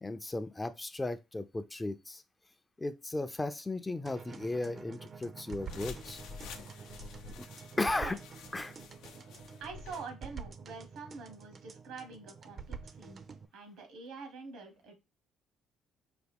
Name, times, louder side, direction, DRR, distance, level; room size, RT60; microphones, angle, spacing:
voice 1, 0.0-2.2 2.8-6.2 7.8-8.2 8.5-8.7, left 2 dB, 20° left, 0.4 m, -35 dB
sound 1, 4.1-13.5, right 6 dB, 45° right, 0.4 m, -48 dB
sound 2, 5.6-10.1, left 6 dB, 80° left, 0.5 m, -49 dB
voice 2, 7.9-8.2 9.6-13.2 13.5-15.0, right 4 dB, 80° right, 1.0 m, -46 dB
4.8 x 2.2 x 3.5 m
supercardioid pair, 80°, 0 cm